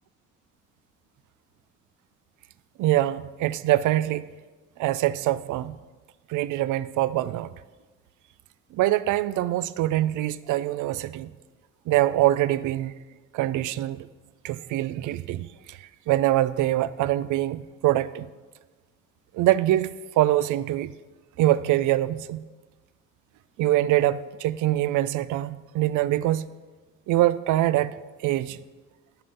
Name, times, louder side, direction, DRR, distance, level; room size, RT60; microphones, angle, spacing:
voice 1, 2.8-4.3 4.8-5.8 6.3-7.5 8.7-11.3 11.9-12.9 13.3-14.1 14.4-18.3 19.3-20.9 21.4-22.4 23.6-26.4 27.1-28.0 28.2-28.6, right 14 dB, 80° right, 16 dB, 0.5 m, -24 dB
12.5 x 5.3 x 5.5 m, 1.3 s
cardioid pair, 90°, 30 cm